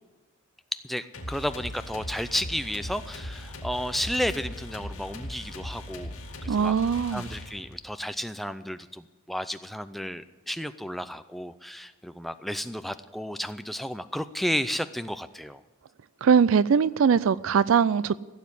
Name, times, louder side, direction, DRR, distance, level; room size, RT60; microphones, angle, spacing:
voice 1, 0.7-6.2 6.4-6.8 7.1-15.6, equal, ahead, 0.4 m, -32 dB
sound 1, 1.1-7.9, left 1 dB, 85° left, 2.1 m, -39 dB
voice 2, 6.5-7.3 16.2-18.2, right 6 dB, 65° right, 0.4 m, -21 dB
16.0 x 7.3 x 9.8 m
head